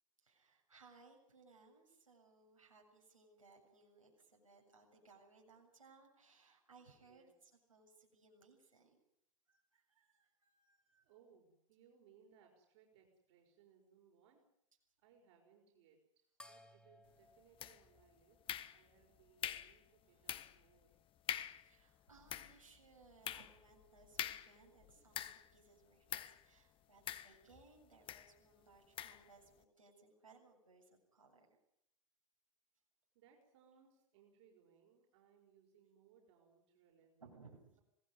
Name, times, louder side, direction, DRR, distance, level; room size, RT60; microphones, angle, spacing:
voice 1, 0.2-9.0 9.5-11.1 20.1-20.3 21.6-31.5 37.2-37.8, right 4 dB, 85° right, 0 dB, 7.5 m, -65 dB
voice 2, 11.0-14.4 15.0-18.4 18.7-21.0 33.1-37.4, right 7 dB, 55° right, 1 dB, 5.7 m, -69 dB
sound 1, 16.4-19.2, left 1 dB, 5° left, 2.6 m, -63 dB
sound 2, 17.6-18.0 18.5-19.0 19.4-19.8 20.3-20.6 20.9-21.0 21.3-21.7 22.1-25.6 26.1-26.4 27.1-27.7 28.1-28.3 29.0-29.3, left 11 dB, 30° left, 1.4 m, -44 dB
26.0 x 18.5 x 9.7 m, 0.75 s
figure-of-eight pair, 85°, 17 cm